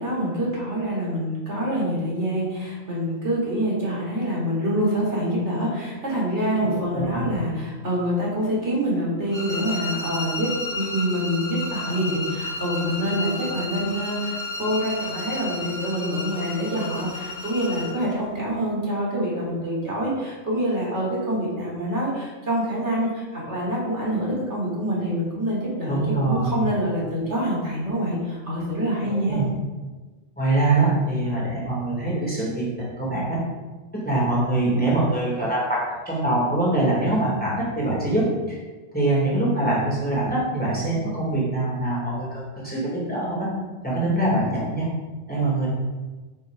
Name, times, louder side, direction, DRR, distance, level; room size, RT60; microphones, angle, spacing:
voice 1, 0.0-29.4, equal, 60° right, -5 dB, 3.4 m, -26 dB
voice 2, 6.9-7.4 25.9-26.6 29.3-29.4 30.4-33.4 34.0-38.6 38.9-43.5 43.8-44.9 45.3-45.7, right 2 dB, 5° left, -6 dB, 3.3 m, -23 dB
sound 1, 9.3-18.0, left 2 dB, 25° left, 2.7 m, -32 dB
9.9 x 5.6 x 5.3 m, 1.3 s
omnidirectional pair, 1.3 m